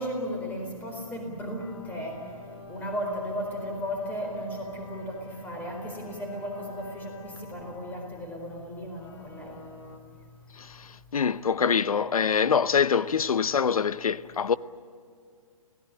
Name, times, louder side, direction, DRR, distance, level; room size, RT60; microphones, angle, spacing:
voice 1, 0.0-2.2 2.7-9.6, equal, 10° left, 4.4 m, -35 dB
sound 1, 1.6-10.0, left 2 dB, 55° left, 3.4 m, -49 dB
voice 2, 11.1-14.6, left 6 dB, 90° left, 0.7 m, -24 dB
26.0 x 18.0 x 8.9 m
hypercardioid pair, 155°, 18 cm